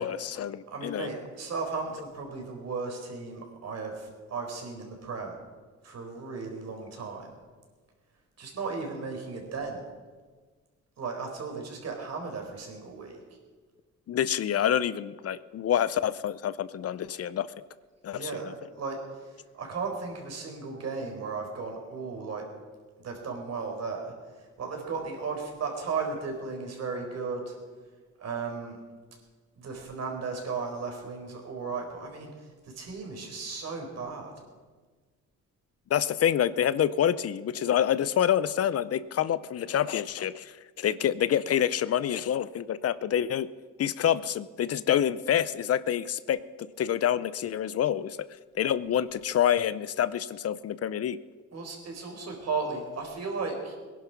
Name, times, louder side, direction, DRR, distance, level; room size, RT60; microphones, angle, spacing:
voice 1, 0.0-1.1 14.1-17.5 18.0-18.5 35.9-43.5 43.8-46.4 46.8-48.2 48.6-51.2, left 10 dB, 55° left, 16 dB, 0.6 m, -27 dB
voice 2, 0.7-5.4 5.8-7.3 8.4-9.8 11.0-13.2 18.1-18.5 18.8-22.4 23.0-27.6 28.2-28.8 29.6-34.3 51.5-53.8, right 4 dB, 55° right, 2 dB, 4.3 m, -35 dB
19.0 x 11.0 x 5.9 m, 1.4 s
cardioid pair, 90°, 30 cm